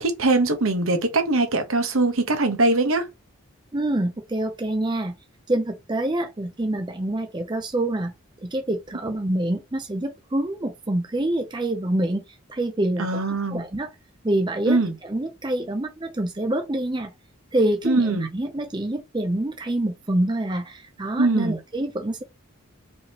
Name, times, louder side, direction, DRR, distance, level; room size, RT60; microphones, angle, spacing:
voice 1, 0.0-3.1 13.0-13.6 14.7-14.9 17.8-18.3 21.2-21.6, right 2 dB, 70° right, 1.1 m, -22 dB
voice 2, 3.7-5.1 5.5-8.1 8.4-12.2 12.5-13.2 13.5-13.9 14.2-17.1 17.5-22.2, right 1 dB, 20° right, 0.5 m, -26 dB
5.0 x 3.5 x 3.0 m
head